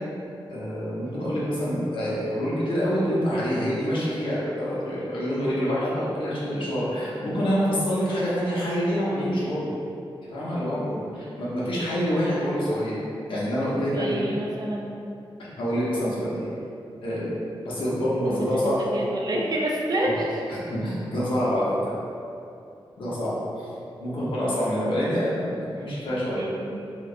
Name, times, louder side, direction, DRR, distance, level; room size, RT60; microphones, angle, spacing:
voice 1, 0.5-9.7 10.3-12.9 13.3-14.3 15.4-16.5 17.0-17.3 17.6-18.8 20.0-20.2 20.5-21.9 23.0-23.7 24.0-26.4, equal, 70° left, -8 dB, 0.9 m, -26 dB
voice 2, 13.8-15.0 18.3-20.4 25.1-25.2 26.1-26.8, right 1 dB, 50° right, -2 dB, 0.4 m, -29 dB
3.1 x 3.0 x 2.4 m, 2.6 s
wide cardioid pair, 180°, 9 cm